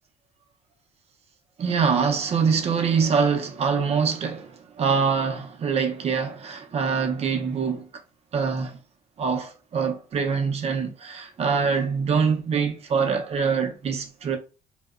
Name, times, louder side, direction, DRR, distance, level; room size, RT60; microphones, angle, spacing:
voice 1, 1.6-7.9 8.3-8.8 9.2-14.4, right 5 dB, 40° right, 0.5 m, -24 dB
2.7 x 2.0 x 2.3 m
cardioid pair, 110°, 17 cm